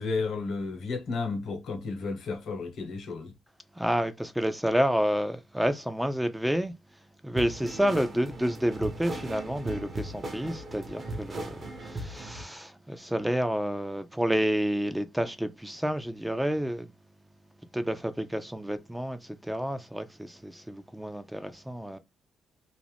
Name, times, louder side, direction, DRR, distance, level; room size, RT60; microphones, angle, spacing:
voice 1, 0.0-3.3, left 4 dB, 65° left, 1.0 m, -32 dB
voice 2, 3.8-6.7 7.2-16.9 17.7-22.0, equal, 5° right, 0.4 m, -29 dB
sound 1, 7.4-12.4, right 1 dB, 40° right, 0.9 m, -38 dB
2.5 x 2.1 x 3.3 m
cardioid pair, 90°, 0 cm